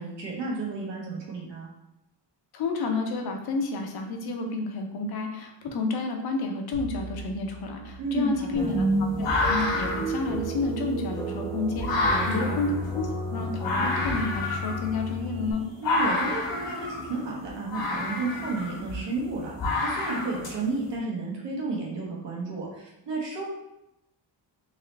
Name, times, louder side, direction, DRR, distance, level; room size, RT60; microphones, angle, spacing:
voice 1, 0.0-1.7 8.0-8.7 12.0-12.6 15.8-19.5 19.8-23.4, right 3 dB, 75° right, -4 dB, 1.3 m, -32 dB
voice 2, 2.5-15.6, left 3 dB, 55° left, 3 dB, 0.7 m, -30 dB
sound 1, 6.7-15.8, right 2 dB, 50° right, 0.6 m, -35 dB
sound 2, 8.5-20.9, left 2 dB, 75° left, 1.3 m, -30 dB
sound 3, 8.5-15.5, equal, 10° left, 0.4 m, -34 dB
3.7 x 3.2 x 3.3 m, 0.87 s
cardioid pair, 165°, 44 cm